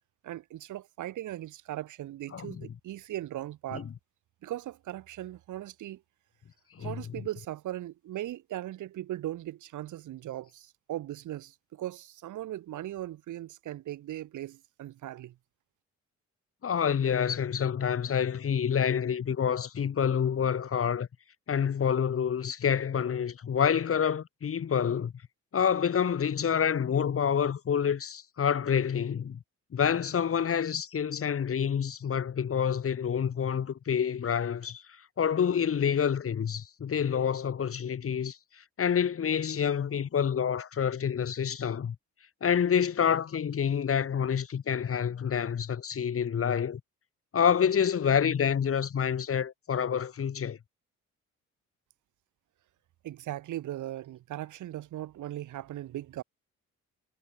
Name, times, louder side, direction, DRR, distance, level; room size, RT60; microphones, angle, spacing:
voice 1, 0.2-3.9 4.4-6.0 6.8-15.3 53.0-56.2, right 13 dB, 80° right, 2.6 m, -38 dB
voice 2, 2.3-2.6 3.7-3.9 6.8-7.0 16.6-21.1 21.5-25.1 25.5-29.4 29.7-34.8 35.2-38.4 38.8-42.0 42.4-46.8 47.3-50.6, left 7 dB, 50° left, 2.6 m, -27 dB
cardioid pair, 90°, 30 cm